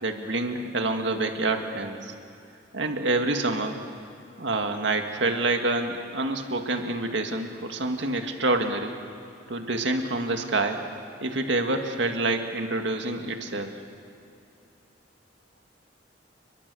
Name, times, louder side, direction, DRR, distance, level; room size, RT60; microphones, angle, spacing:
voice 1, 0.0-2.1 2.7-3.8 4.4-8.9 9.5-10.8 11.2-13.7, right 2 dB, 70° right, 5 dB, 2.0 m, -27 dB
30.0 x 22.5 x 7.0 m, 2.7 s
head